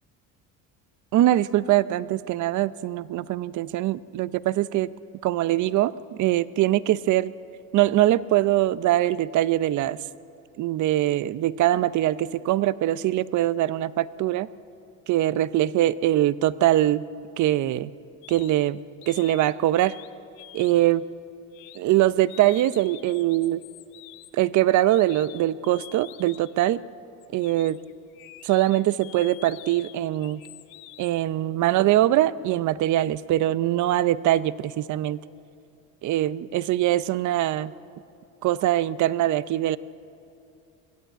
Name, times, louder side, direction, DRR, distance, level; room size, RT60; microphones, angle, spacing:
voice 1, 1.1-4.9 5.2-7.3 7.7-10.0 10.6-14.5 15.1-17.0 17.4-17.9 18.3-20.0 20.5-21.0 21.8-23.6 24.3-26.8 27.3-27.8 28.4-30.4 31.0-35.2 36.0-37.7 38.4-39.8, right 14 dB, 50° right, 17 dB, 0.6 m, -22 dB
sound 1, 18.2-18.6 19.0-20.1 20.4-20.9 21.5-21.8 22.3-26.6 27.2-31.2, left 15 dB, 90° left, 1.0 m, -47 dB
22.5 x 14.0 x 9.1 m, 2.6 s
cardioid pair, 115°, 37 cm